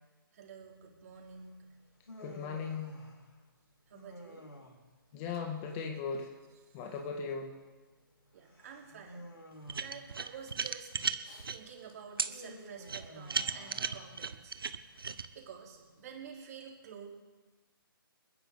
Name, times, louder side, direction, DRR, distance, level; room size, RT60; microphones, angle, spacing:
voice 1, 0.3-1.7 3.9-4.5 5.2-5.4 5.7-5.9 6.2-7.0 8.3-9.3 9.7-10.9 11.5-14.6 15.3-17.1, right 7 dB, 40° right, 0 dB, 3.5 m, -50 dB
Human voice, 1.1-16.4, equal, 90° left, 4.4 m, -54 dB
voice 2, 2.2-2.9 5.1-6.3 6.7-7.5, left 5 dB, 25° left, 2 dB, 1.9 m, -37 dB
sound 1, 9.7-11.6 12.2-12.3 12.9-15.3, right 5 dB, 75° right, 1.0 m, -35 dB
29.5 x 10.5 x 3.8 m, 1.3 s
figure-of-eight pair, 145°, 12 cm